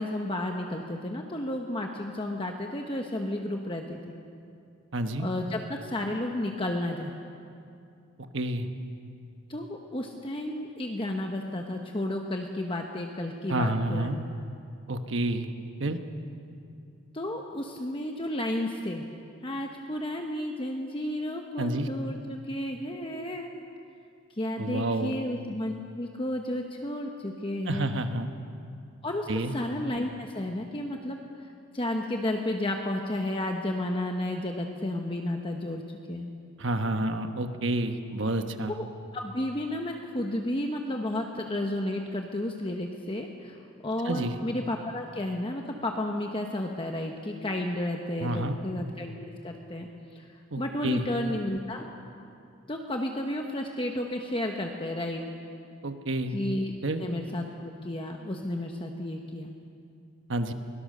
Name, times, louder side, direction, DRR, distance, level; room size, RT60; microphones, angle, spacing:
voice 1, 0.0-4.0 5.2-7.1 9.5-14.3 17.1-19.1 19.4-23.5 24.3-28.0 29.0-31.2 31.7-36.3 38.7-50.3 50.6-51.9 52.7-55.2 56.3-56.7 57.0-59.5, left 1 dB, 25° left, 2 dB, 1.0 m, -32 dB
voice 2, 4.9-5.3 8.3-8.7 13.5-14.2 14.9-15.5 15.8-16.0 21.6-21.9 24.6-25.1 27.7-28.3 29.3-29.5 36.6-38.7 44.1-44.4 48.2-48.6 50.5-51.1 55.8-56.4 56.8-57.0 60.3-60.5, right 1 dB, 60° right, 7 dB, 1.2 m, -29 dB
23.0 x 17.5 x 6.6 m, 2.5 s
head